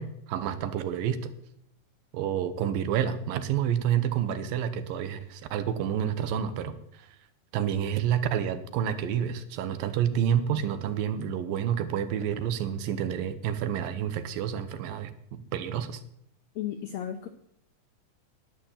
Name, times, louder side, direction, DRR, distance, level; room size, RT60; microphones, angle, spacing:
voice 1, 0.0-1.3 2.1-7.1 7.5-16.0, right 9 dB, 85° right, 12 dB, 2.7 m, -29 dB
voice 2, 16.5-17.3, left 10 dB, 80° left, 7 dB, 1.5 m, -34 dB
11.0 x 10.0 x 7.3 m, 0.73 s
omnidirectional pair, 4.0 m